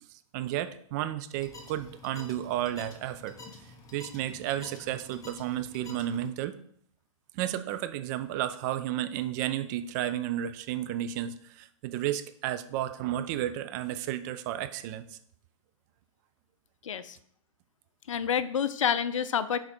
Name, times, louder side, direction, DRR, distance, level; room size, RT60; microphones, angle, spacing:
voice 1, 0.3-3.3 3.9-6.6 7.3-15.2, right 12 dB, 35° right, 11 dB, 0.4 m, -32 dB
sound 1, 1.3-6.3, left 3 dB, 20° left, 0.9 m, -49 dB
voice 2, 16.9-17.2 18.1-19.6, left 8 dB, 65° left, 14 dB, 0.5 m, -28 dB
5.8 x 3.8 x 4.3 m, 0.65 s
figure-of-eight pair, 110°, 18 cm